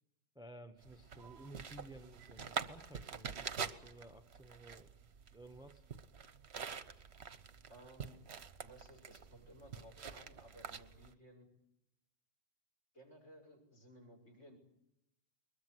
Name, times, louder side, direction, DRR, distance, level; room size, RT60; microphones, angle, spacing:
voice 1, 0.3-4.9 5.3-5.8, right 1 dB, 5° right, 7 dB, 1.0 m, -55 dB
sound 1, 0.8-11.1, right 6 dB, 45° right, 1.2 m, -46 dB
voice 2, 7.7-8.2 8.6-11.5 12.9-14.6, right 1 dB, 45° left, 4 dB, 6.7 m, -58 dB
21.5 x 21.5 x 7.9 m, 0.84 s
omnidirectional pair, 1.7 m